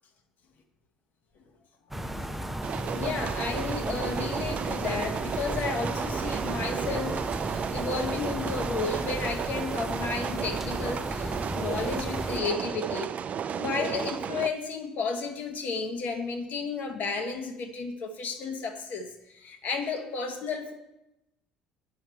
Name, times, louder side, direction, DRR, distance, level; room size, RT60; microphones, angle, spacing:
voice 1, 1.9-2.6 2.8-13.1 13.5-20.7, left 4 dB, 50° left, 5 dB, 1.2 m, -33 dB
sound 1, 1.9-12.4, right 1 dB, 5° right, 0.6 m, -35 dB
sound 2, 2.6-14.5, right 7 dB, 40° right, 0.3 m, -33 dB
9.6 x 5.7 x 4.4 m, 0.90 s
figure-of-eight pair, 55°, 4 cm